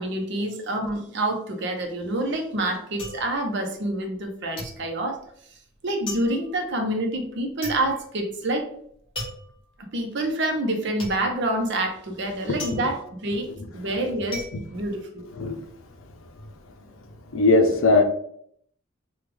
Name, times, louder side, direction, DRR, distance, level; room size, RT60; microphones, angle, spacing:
voice 1, 0.0-5.2 5.8-8.7 9.9-14.4 14.7-15.3, right 1 dB, 60° right, 4 dB, 0.7 m, -27 dB
sound 1, 2.1-4.3 4.6-15.7 16.0-16.6, left 1 dB, 25° left, 1.4 m, -40 dB
voice 2, 12.5-12.8 14.5-14.6 15.3-15.7 17.3-18.0, left 3 dB, 80° left, 5 dB, 0.6 m, -20 dB
3.4 x 2.3 x 3.3 m, 0.66 s
head